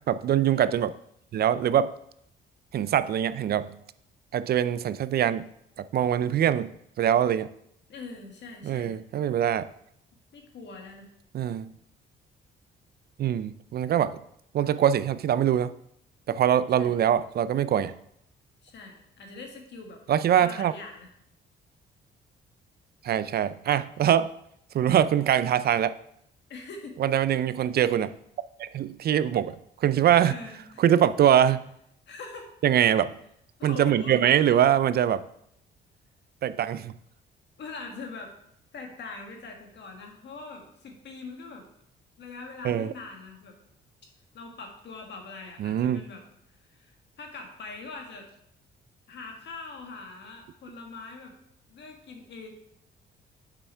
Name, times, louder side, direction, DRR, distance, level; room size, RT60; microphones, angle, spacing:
voice 1, 0.1-0.9 1.3-1.9 2.7-3.7 4.3-5.5 5.8-7.5 8.6-9.7 11.3-11.7 13.2-14.2 14.5-15.7 16.3-17.9 20.1-20.7 23.0-24.3 24.7-26.0 27.0-28.1 28.6-29.6 29.8-30.4 30.8-31.7 32.6-33.1 33.6-35.2 36.4-36.9 42.6-42.9 45.6-46.0, right 10 dB, 50° right, 15 dB, 0.4 m, -23 dB
voice 2, 7.9-9.0 10.3-11.1 16.8-17.0 18.6-20.0 20.4-21.1 26.5-27.0 30.2-30.8 31.5-31.6 32.1-32.5 33.6-34.3 37.6-38.3 38.7-41.7 42.2-43.6 44.3-46.2 46.7-46.9 47.2-48.3 49.1-51.3 51.7-52.5, left 3 dB, 60° left, 2 dB, 1.8 m, -42 dB
6.9 x 5.6 x 4.5 m, 0.73 s
cardioid pair, 90°, 20 cm